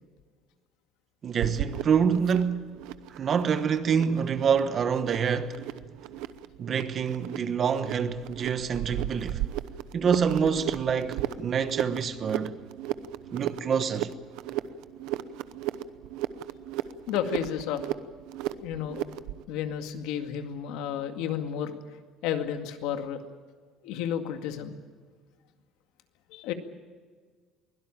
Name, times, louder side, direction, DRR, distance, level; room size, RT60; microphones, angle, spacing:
voice 1, 1.2-2.6 3.1-5.6 6.6-9.4 9.9-12.6 13.3-14.1, right 6 dB, 30° right, 1.1 m, -26 dB
sound 1, 1.4-19.4, right 13 dB, 80° right, 0.9 m, -36 dB
voice 2, 17.1-17.8 18.6-19.0 19.5-21.8 22.2-23.3 23.8-24.8 26.3-26.5, left 9 dB, 85° left, 2.1 m, -32 dB
23.5 x 17.0 x 8.9 m
cardioid pair, 180°, 0 cm